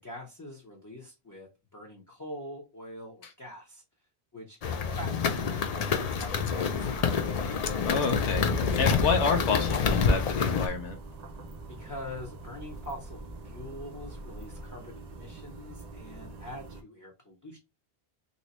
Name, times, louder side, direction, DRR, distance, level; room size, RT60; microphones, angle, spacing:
voice 1, 0.0-3.8 4.3-5.4 5.7-7.2 11.7-17.6, left 1 dB, 20° left, 0.6 m, -44 dB
sound 1, 4.6-10.7, left 5 dB, 65° left, 0.4 m, -27 dB
sound 2, 6.7-14.7, equal, 45° left, 0.9 m, -44 dB
sound 3, 6.8-16.8, right 3 dB, 50° right, 0.5 m, -45 dB
voice 2, 7.8-8.5 8.8-11.0, left 5 dB, 90° left, 0.9 m, -28 dB
3.1 x 2.7 x 2.9 m
omnidirectional pair, 1.2 m